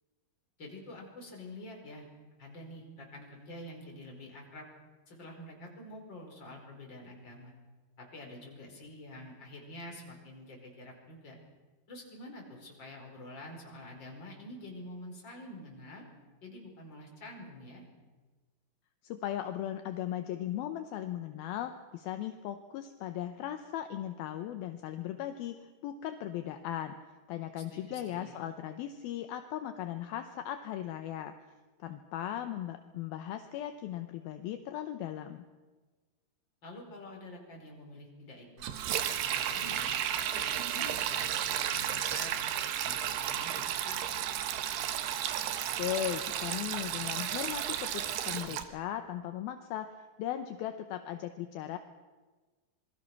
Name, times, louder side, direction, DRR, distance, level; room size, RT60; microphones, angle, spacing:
voice 1, 0.6-2.1 2.4-4.7 5.1-7.5 8.0-11.4 11.9-16.1 16.4-17.8 27.7-28.4 36.6-40.0 40.3-44.2, left 1 dB, 25° left, 0 dB, 5.3 m, -47 dB
voice 2, 19.0-25.6 25.8-27.0 27.3-31.3 31.8-35.4 45.8-51.8, left 11 dB, 75° left, 7 dB, 2.7 m, -37 dB
Sink (filling or washing), 38.6-48.6, right 10 dB, 90° right, 3.4 m, -33 dB
27.0 x 22.0 x 6.0 m, 1.3 s
omnidirectional pair, 4.6 m